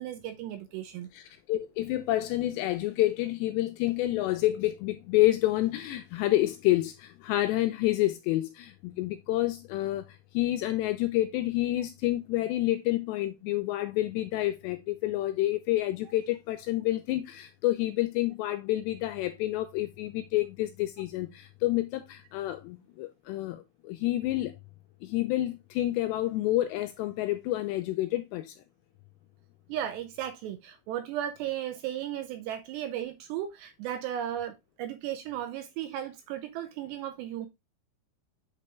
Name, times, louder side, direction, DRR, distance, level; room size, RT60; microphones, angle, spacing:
voice 1, 0.0-1.1 29.7-37.5, right 11 dB, 80° right, 2.6 m, -35 dB
voice 2, 1.1-10.1 10.3-24.5 25.0-28.5, left 15 dB, 85° left, 2.5 m, -28 dB
8.4 x 4.1 x 3.3 m
omnidirectional pair, 5.4 m